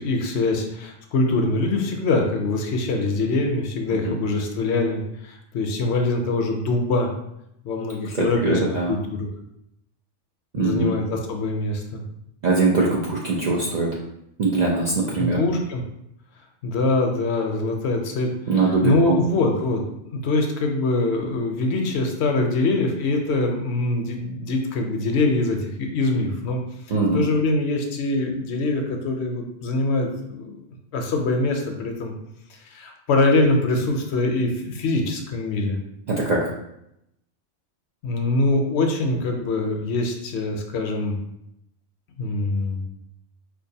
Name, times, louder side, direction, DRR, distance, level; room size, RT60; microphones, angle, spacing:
voice 1, 0.0-7.1 7.6-8.6 8.9-9.3 10.6-12.0 15.2-15.8 16.6-19.8 20.1-26.6 27.1-30.6 30.9-32.1 32.6-35.8 38.0-41.2 42.2-42.8, left 2 dB, 70° left, 3 dB, 0.8 m, -23 dB
voice 2, 8.1-9.0 10.5-10.9 12.4-13.9 14.4-15.4 18.5-19.2 26.9-27.2 36.1-36.4, right 3 dB, 55° right, -4 dB, 0.5 m, -22 dB
4.5 x 2.4 x 2.7 m, 0.80 s
omnidirectional pair, 1.3 m